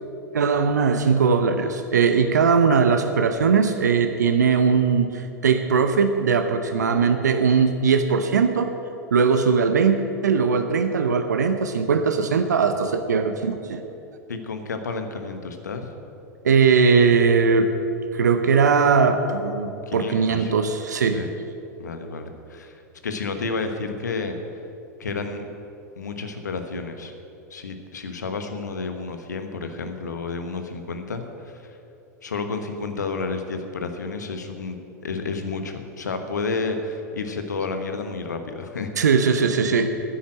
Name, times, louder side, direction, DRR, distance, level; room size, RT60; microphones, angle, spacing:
voice 1, 0.3-8.8 9.1-13.8 16.4-17.7 18.1-21.2 39.0-39.9, right 5 dB, 75° right, 8 dB, 0.7 m, -20 dB
voice 2, 14.3-15.9 19.9-20.5 21.1-21.3 21.8-24.4 25.0-25.4 26.0-27.1 27.5-31.8 32.2-39.2, left 4 dB, 80° left, 7 dB, 1.2 m, -31 dB
10.0 x 9.7 x 7.6 m, 2.8 s
figure-of-eight pair, 85°, 9 cm